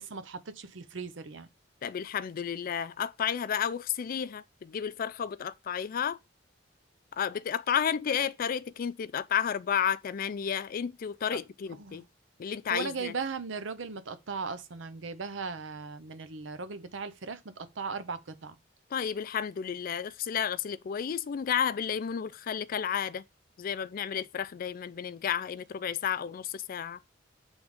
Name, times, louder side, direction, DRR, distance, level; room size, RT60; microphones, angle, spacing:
voice 1, 0.0-1.5 11.8-12.0 12.7-18.6, right 4 dB, 80° right, 0.7 m, -38 dB
voice 2, 1.8-6.2 7.1-12.0 12.4-13.1 18.9-23.2 23.6-27.0, left 8 dB, 50° left, 0.3 m, -32 dB
7.8 x 3.5 x 3.5 m
head